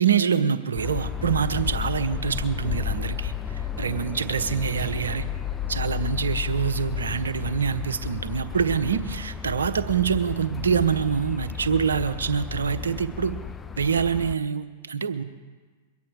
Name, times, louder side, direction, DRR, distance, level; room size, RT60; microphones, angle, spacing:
voice 1, 0.0-5.3 5.7-13.3 13.8-15.2, right 7 dB, 80° right, 9 dB, 1.0 m, -25 dB
sound 1, 0.8-14.3, left 8 dB, 15° left, 0.6 m, -32 dB
23.5 x 8.6 x 4.7 m, 1.4 s
hypercardioid pair, 100°, 0 cm